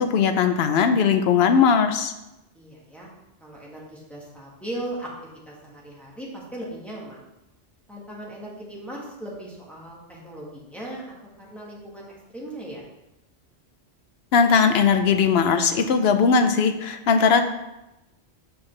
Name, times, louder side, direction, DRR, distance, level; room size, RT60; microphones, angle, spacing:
voice 1, 0.0-2.1 14.3-17.4, left 6 dB, 70° left, 7 dB, 0.9 m, -19 dB
voice 2, 2.5-3.1 3.4-5.1 5.4-7.3 7.9-12.1 12.3-12.8, right 1 dB, ahead, -5 dB, 1.6 m, -38 dB
7.1 x 5.5 x 3.3 m, 0.94 s
omnidirectional pair, 1.1 m